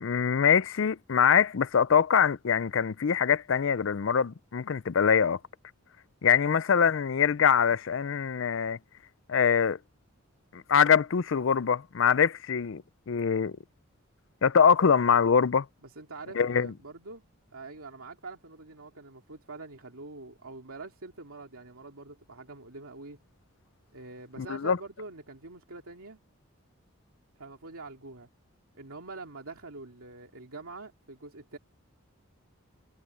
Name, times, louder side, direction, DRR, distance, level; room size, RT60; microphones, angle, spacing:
voice 1, 0.0-5.4 6.2-8.8 9.3-9.8 10.5-13.6 14.4-15.7 16.3-16.7 24.4-24.8, left 7 dB, 65° left, 0.5 m, -24 dB
voice 2, 15.8-17.2 17.5-23.2 23.9-26.2 27.4-28.3 28.7-31.6, right 3 dB, 85° right, 2.6 m, -45 dB
head